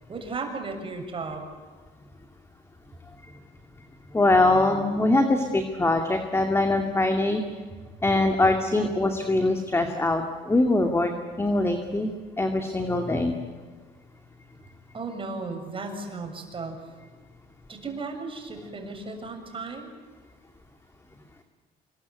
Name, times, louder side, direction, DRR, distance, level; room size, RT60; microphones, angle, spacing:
voice 1, 0.1-1.4 14.9-16.8 17.7-19.9, right 3 dB, 30° right, 4 dB, 6.9 m, -35 dB
voice 2, 4.1-7.4 8.0-11.1 11.4-12.1 12.4-13.3, left 2 dB, 15° left, 4 dB, 2.5 m, -23 dB
26.0 x 22.0 x 9.6 m, 1.5 s
cardioid pair, 110°, 17 cm